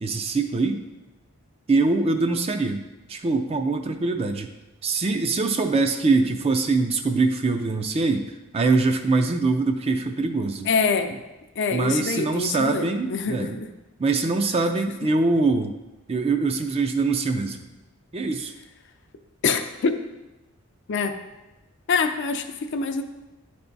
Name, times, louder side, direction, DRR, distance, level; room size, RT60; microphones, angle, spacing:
voice 1, 0.0-0.8 1.7-4.5 4.8-10.7 11.7-13.6 14.0-15.7 16.1-17.7 18.1-18.5, right 3 dB, 25° right, 6 dB, 0.4 m, -23 dB
voice 2, 10.6-11.1 11.6-13.7 19.4-19.9 20.9-21.2 21.9-23.0, left 5 dB, 55° left, 6 dB, 0.5 m, -25 dB
9.9 x 3.4 x 4.0 m, 1.1 s
head